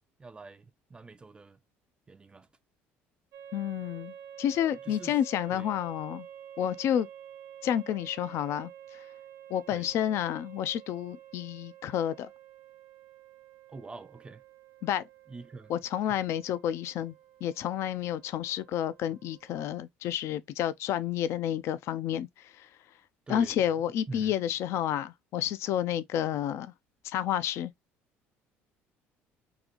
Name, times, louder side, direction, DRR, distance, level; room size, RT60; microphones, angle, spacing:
voice 1, 0.2-1.6 2.1-2.5 4.6-5.2 5.5-5.7 9.7-9.9 13.7-14.4 15.3-15.7 16.1-16.2 23.3-23.7 24.1-24.4, right 3 dB, 20° right, 0.4 m, -45 dB
sound 1, 3.3-19.7, right 10 dB, 70° right, 0.7 m, -50 dB
voice 2, 3.5-6.3 6.6-7.1 7.6-9.0 9.5-12.3 14.8-15.0 15.7-17.1 17.4-22.7 23.3-26.7 27.0-27.7, left 10 dB, 65° left, 0.4 m, -30 dB
3.8 x 2.5 x 2.9 m
cardioid pair, 100°, 5 cm